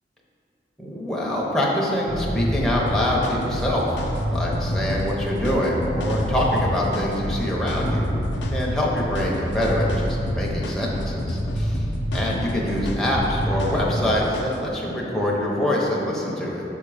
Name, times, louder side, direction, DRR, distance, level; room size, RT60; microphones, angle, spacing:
voice 1, 0.8-8.1 8.5-11.8 12.1-16.6, left 1 dB, 5° left, -4 dB, 0.8 m, -25 dB
sound 1, 2.1-13.9, equal, 60° right, 1.0 m, -27 dB
sound 2, 2.9-14.7, left 1 dB, 80° left, 0.6 m, -34 dB
6.4 x 3.7 x 4.9 m, 2.9 s
head